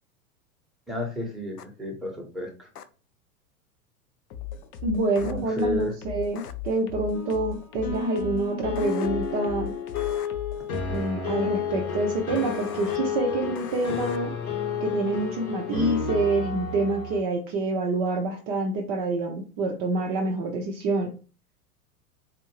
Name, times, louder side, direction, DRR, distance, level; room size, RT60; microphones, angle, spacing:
voice 1, 0.9-2.7 5.3-5.9, equal, ahead, -1 dB, 1.1 m, -31 dB
sound 1, 1.6-1.7 2.8-2.9 5.2-5.3 6.4-6.5 8.8-9.1 10.0-10.3 12.4-13.0 13.6-14.2, left 8 dB, 85° left, 0.5 m, -42 dB
sound 2, 4.3-11.1, left 10 dB, 30° left, 0.6 m, -38 dB
voice 2, 4.8-9.7 10.9-14.3 14.8-21.2, right 2 dB, 35° right, 2 dB, 0.7 m, -27 dB
sound 3, 7.1-17.2, left 5 dB, 70° left, 1.2 m, -31 dB
4.1 x 2.6 x 3.1 m, 0.35 s
figure-of-eight pair, 90°, 45 cm